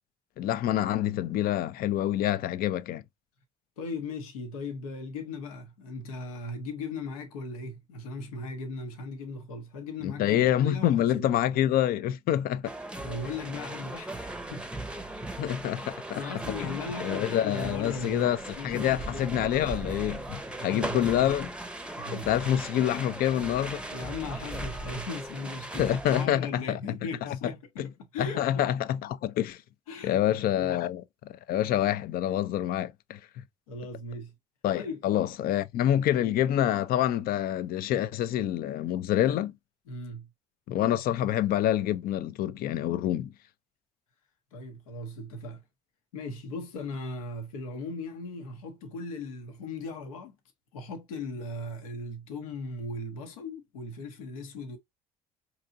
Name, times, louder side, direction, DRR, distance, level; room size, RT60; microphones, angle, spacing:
voice 1, 0.4-3.0 10.0-12.7 15.4-16.2 16.6-18.4 18.6-21.5 22.1-23.8 25.8-26.8 27.2-27.5 27.8-27.9 28.2-29.6 30.0-33.2 34.6-39.5 40.7-43.3, left 11 dB, 60° left, 0.4 m, -27 dB
voice 2, 3.8-11.2 13.0-14.7 16.1-19.5 20.6-21.3 21.8-22.3 23.9-28.7 29.9-30.2 30.6-30.7 33.7-34.3 34.7-35.0 39.9-40.3 44.5-45.6 46.1-50.4 50.7-54.8, left 2 dB, 85° left, 0.8 m, -38 dB
sound 1, 12.6-26.3, right 1 dB, 5° right, 0.6 m, -38 dB
4.7 x 2.9 x 2.5 m
hypercardioid pair, 55°, 18 cm